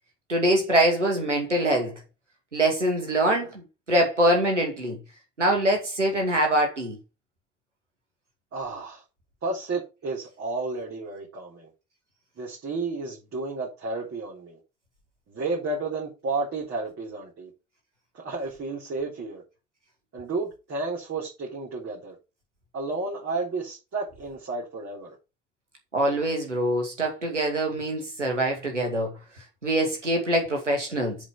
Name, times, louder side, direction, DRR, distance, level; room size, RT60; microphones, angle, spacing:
voice 1, 0.3-1.9 2.5-5.0 5.4-7.0 25.9-29.1 29.6-31.2, right 1 dB, 85° right, 2.4 m, -24 dB
voice 2, 8.5-9.0 9.4-11.7 12.4-14.6 15.3-17.5 18.1-19.4 20.1-22.2 22.7-25.1, right 3 dB, 40° right, 3.7 m, -32 dB
7.2 x 5.2 x 5.8 m
figure-of-eight pair, 50°, 35 cm